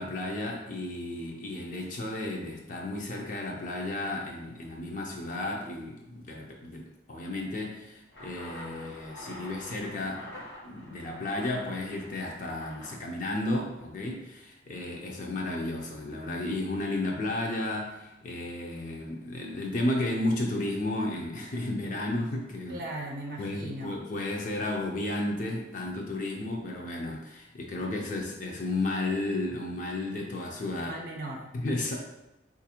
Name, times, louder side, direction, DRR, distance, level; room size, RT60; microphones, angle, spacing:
voice 1, 0.0-22.8 23.4-30.9 31.5-32.0, left 2 dB, 45° left, 0 dB, 0.4 m, -33 dB
sound 1, 8.1-14.0, left 1 dB, 75° left, 1.0 m, -47 dB
voice 2, 22.7-23.9 30.7-31.5, right 1 dB, 55° right, 0 dB, 0.6 m, -38 dB
4.0 x 2.5 x 2.8 m, 0.92 s
head